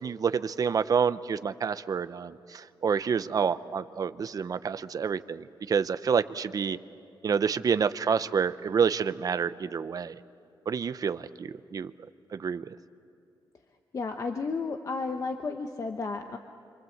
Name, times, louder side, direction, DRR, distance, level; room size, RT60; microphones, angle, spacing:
voice 1, 0.0-6.8 7.2-10.2 10.7-11.9 12.3-12.7, right 6 dB, 50° right, 13 dB, 0.7 m, -28 dB
voice 2, 13.9-16.4, left 4 dB, 45° left, 6 dB, 0.9 m, -32 dB
27.0 x 25.0 x 7.9 m, 2.5 s
wide cardioid pair, 135°, 8 cm